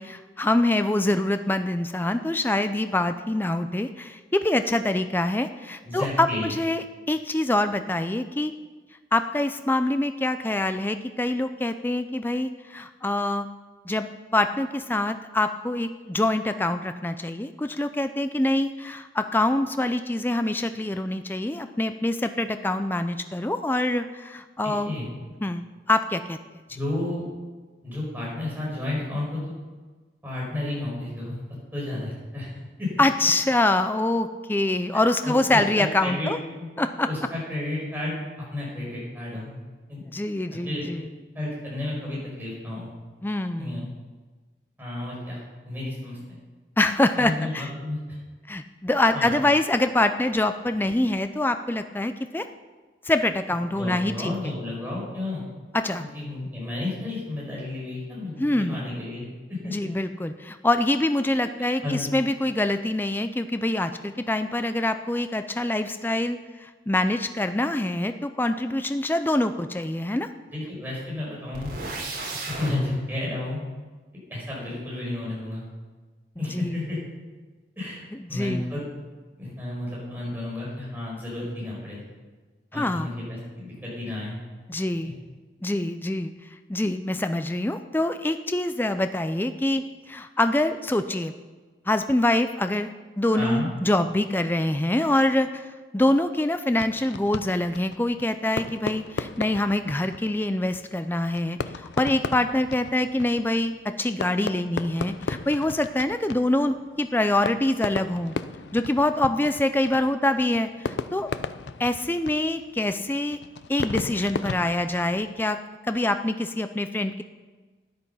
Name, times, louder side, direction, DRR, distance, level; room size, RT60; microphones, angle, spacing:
voice 1, 0.0-8.5 9.1-13.5 13.9-14.1 14.3-25.0 25.4-25.6 25.9-26.4 33.0-36.4 36.8-37.1 40.1-41.1 43.2-43.8 46.8-47.7 48.5-52.5 53.0-54.5 55.7-56.0 58.4-58.8 59.7-70.3 76.5-76.8 78.1-78.6 82.7-83.1 84.7-85.2 85.6-86.3 86.7-91.3 91.9-92.9 93.2-95.7 95.9-108.3 108.7-111.3 111.8-113.4 113.7-115.6 115.9-117.2, left 1 dB, 10° left, 9 dB, 0.4 m, -25 dB
voice 2, 5.8-6.5 24.6-25.1 26.7-27.3 27.8-29.5 30.2-31.4 31.7-32.5 32.8-32.9 34.9-36.3 36.6-36.7 37.1-38.2 38.5-39.5 39.9-40.0 40.5-40.9 41.3-42.9 43.6-43.9 44.8-45.4 45.6-46.2 47.2-48.2 49.1-49.3 53.7-55.4 56.0-59.7 61.8-62.1 70.5-71.7 72.5-73.6 74.3-75.6 76.4-77.0 77.8-78.0 78.3-78.8 79.4-82.0 82.7-84.4 85.0-85.1 93.3-93.7, left 2 dB, 10° right, -5 dB, 5.4 m, -32 dB
sound 1, 71.5-72.7, right 2 dB, 55° right, 3.9 m, -33 dB
Fireworks, 96.7-115.5, left 4 dB, 85° left, 0.5 m, -36 dB
13.0 x 10.5 x 5.6 m, 1.3 s
head